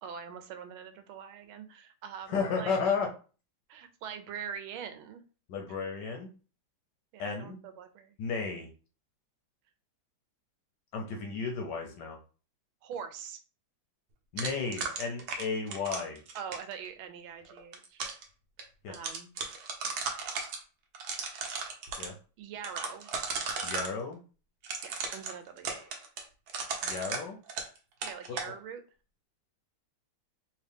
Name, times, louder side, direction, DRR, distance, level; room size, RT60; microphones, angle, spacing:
voice 1, 0.0-2.8 3.7-5.2 7.1-8.2 12.8-13.4 16.3-18.1 18.9-19.3 22.4-23.1 24.8-25.8 28.0-28.8, right 7 dB, 80° right, 8 dB, 1.4 m, -43 dB
voice 2, 2.3-3.1 5.5-6.3 7.2-7.6 8.2-8.7 10.9-12.2 14.3-16.2 18.8-19.0 22.0-22.1 23.6-24.2 26.8-27.4 28.3-28.5, left 5 dB, 70° left, 2 dB, 1.1 m, -33 dB
sound 1, 14.4-16.7 17.5-18.2 18.6-18.7 18.9-20.6 20.9-22.1 22.6-23.9 24.6-27.8 28.0-28.5, right 4 dB, 65° right, 1.0 m, -35 dB
3.5 x 2.8 x 3.4 m, 0.36 s
omnidirectional pair, 2.3 m